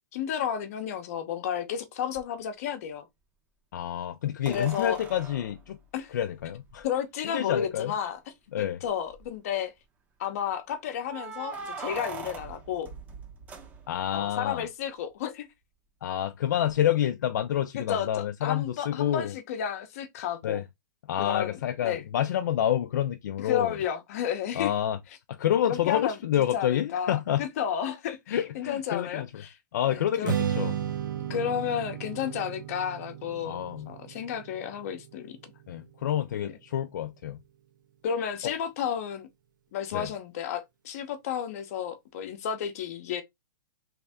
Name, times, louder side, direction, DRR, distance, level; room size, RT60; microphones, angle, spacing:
voice 1, 0.1-3.1 4.5-5.0 5.9-6.1 6.8-8.2 8.6-9.7 10.2-12.9 14.1-15.5 17.8-20.6 21.2-22.0 23.4-24.7 25.6-26.2 26.5-29.6 29.9-30.3 31.3-33.6 33.9-35.4 36.4-36.6 38.0-39.3 39.7-43.2, left 9 dB, 50° left, 0.8 m, -32 dB
sound 1, 2.1-2.2 4.4-6.8 7.8-7.9 8.2-8.3 8.8-9.3 11.0-14.2 16.7-16.8, right 5 dB, 15° right, 0.6 m, -42 dB
voice 2, 3.7-5.8 6.1-6.9 7.2-7.9 8.5-8.8 13.9-14.7 16.0-19.3 20.4-20.6 21.1-23.8 24.5-25.0 25.3-27.4 28.3-29.4 29.7-30.8 31.3-31.4 33.4-33.9 35.7-37.4 39.9-40.1, left 11 dB, 70° left, 0.4 m, -28 dB
Strum, 30.2-36.5, right 9 dB, 80° right, 0.7 m, -35 dB
3.2 x 2.6 x 3.4 m
hypercardioid pair, 150°, 10 cm